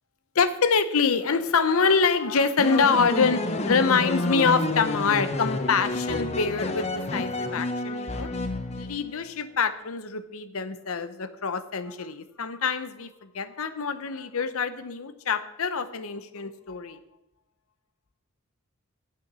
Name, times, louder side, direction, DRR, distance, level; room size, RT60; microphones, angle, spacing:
voice 1, 0.3-8.3 8.8-17.0, left 5 dB, 75° left, 12 dB, 0.7 m, -25 dB
sound 1, 2.6-9.2, left 2 dB, 30° left, 0.7 m, -29 dB
9.7 x 6.9 x 6.2 m, 0.85 s
head